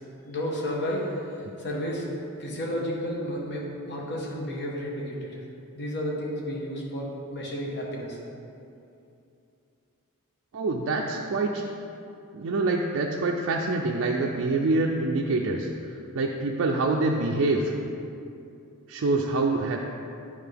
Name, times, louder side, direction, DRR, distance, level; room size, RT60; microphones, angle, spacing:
voice 1, 0.2-2.1 2.4-5.4 5.7-8.2, equal, 50° left, -3 dB, 1.3 m, -32 dB
voice 2, 10.5-11.6 12.3-15.7 16.1-17.7 18.9-19.8, right 3 dB, 55° right, -1 dB, 0.4 m, -25 dB
9.3 x 5.0 x 3.4 m, 2.7 s
head